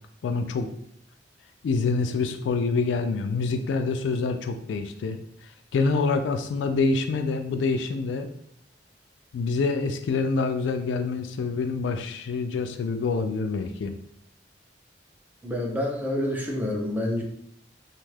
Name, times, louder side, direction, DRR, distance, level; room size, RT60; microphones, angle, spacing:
voice 1, 0.2-0.7 1.6-5.2 5.7-8.3 9.3-13.9, left 4 dB, 80° left, 7 dB, 0.3 m, -26 dB
voice 2, 15.4-17.2, left 1 dB, 10° right, 0 dB, 0.4 m, -28 dB
2.5 x 2.3 x 3.2 m, 0.70 s
head